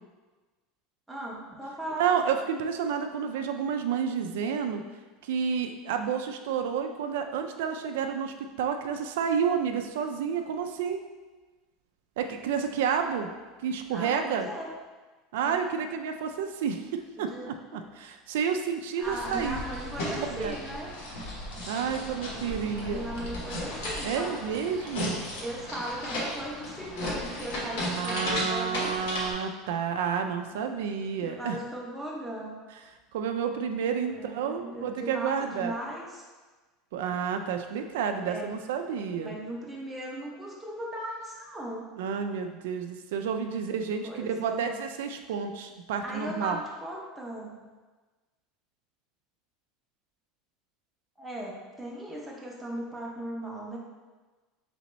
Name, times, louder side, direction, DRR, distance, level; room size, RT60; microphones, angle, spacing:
voice 1, 1.1-2.1 13.9-14.7 17.2-17.8 19.0-20.9 22.8-24.5 25.4-28.9 31.2-32.5 34.1-36.2 38.3-38.5 39.2-41.9 44.0-44.6 46.0-47.6 51.2-53.8, right 1 dB, 5° right, -4 dB, 0.6 m, -38 dB
voice 2, 2.0-4.8 5.2-11.0 12.2-13.3 13.6-14.5 15.3-19.6 20.1-20.6 21.7-23.0 24.0-25.3 27.9-31.6 33.1-35.8 36.9-39.3 42.0-46.6, right 7 dB, 90° right, 5 dB, 0.3 m, -30 dB
sound 1, 19.0-29.3, left 1 dB, 80° left, 1.1 m, -35 dB
4.0 x 3.4 x 3.0 m, 1.3 s
cardioid pair, 175°, 0 cm